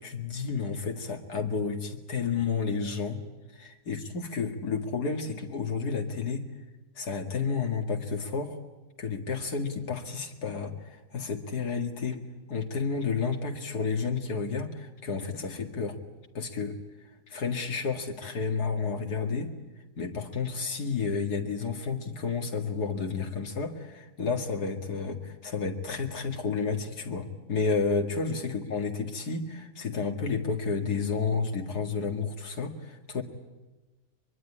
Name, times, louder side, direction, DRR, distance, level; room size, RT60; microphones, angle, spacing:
voice 1, 0.0-3.2 3.9-6.5 7.0-8.6 9.0-12.2 12.5-16.0 16.3-16.8 17.3-19.5 20.0-33.2, left 5 dB, 85° left, 4 dB, 2.6 m, -31 dB
23.5 x 22.5 x 9.9 m, 1.1 s
omnidirectional pair, 1.6 m